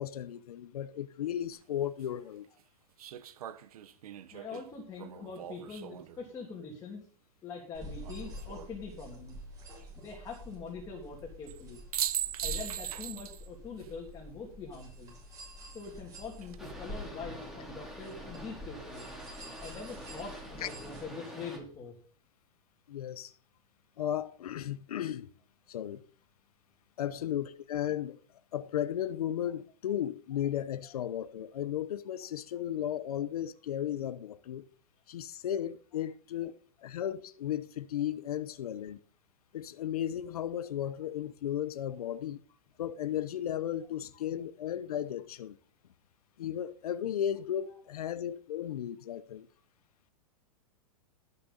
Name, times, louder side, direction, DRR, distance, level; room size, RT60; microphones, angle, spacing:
voice 1, 0.0-2.5 20.6-20.7 22.9-23.3 24.0-25.3 25.7-26.0 27.0-28.2 28.5-34.6 35.1-36.5 36.8-39.0 39.5-42.4 42.8-45.6 46.4-49.5, left 10 dB, 85° left, 0.9 m, -35 dB
sound 1, 1.5-1.6 3.0-6.2 8.0-8.7 11.5-11.6 11.9-13.5 13.8-13.9 16.2-16.7, right 11 dB, 80° right, 1.1 m, -39 dB
voice 2, 4.3-7.0 7.4-9.4 10.0-11.8 12.4-15.2 15.7-19.1 19.6-21.9 27.0-27.1 35.9-36.0 38.5-38.6 47.7-48.1, left 4 dB, 20° left, 2.9 m, -44 dB
sound 2, 7.7-21.0, equal, 20° right, 6.7 m, -47 dB
Boat Water vehicle, 16.6-21.6, equal, ahead, 3.5 m, -46 dB
19.5 x 6.8 x 4.1 m
hypercardioid pair, 145°, 19 cm